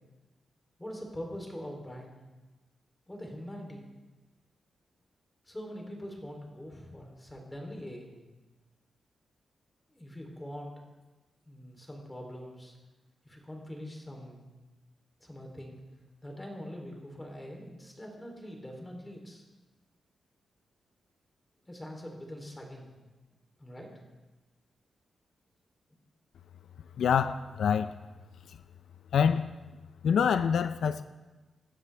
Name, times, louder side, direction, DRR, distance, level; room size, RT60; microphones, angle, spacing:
voice 1, 0.8-2.1 3.1-3.9 5.4-8.1 9.9-10.7 11.4-12.7 13.2-14.5 15.2-15.8 16.2-19.4 21.7-22.9 23.6-23.9, equal, 10° left, 1 dB, 3.3 m, -43 dB
voice 2, 27.0-27.9 28.5-28.6 29.1-29.5 30.0-31.0, left 7 dB, 75° left, 11 dB, 0.5 m, -26 dB
25.5 x 12.0 x 3.4 m, 1.2 s
wide cardioid pair, 140°, 0 cm